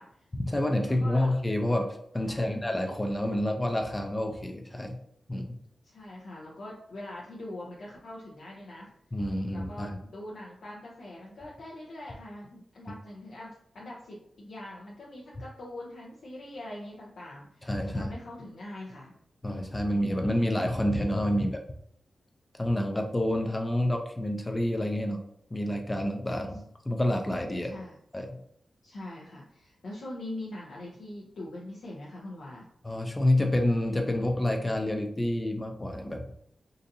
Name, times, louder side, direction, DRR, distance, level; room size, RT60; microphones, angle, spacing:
voice 1, 0.3-5.0 5.3-5.6 9.1-10.0 17.6-18.1 19.4-21.6 22.6-25.2 25.5-27.7 28.1-28.4 32.8-36.2, left 1 dB, 20° left, 3 dB, 0.4 m, -28 dB
voice 2, 0.9-1.4 2.3-2.6 5.8-8.9 9.5-19.1 27.6-27.9 28.8-32.7, left 1 dB, 75° left, -5 dB, 0.6 m, -43 dB
3.8 x 2.6 x 2.6 m, 0.70 s
cardioid pair, 80°, 0 cm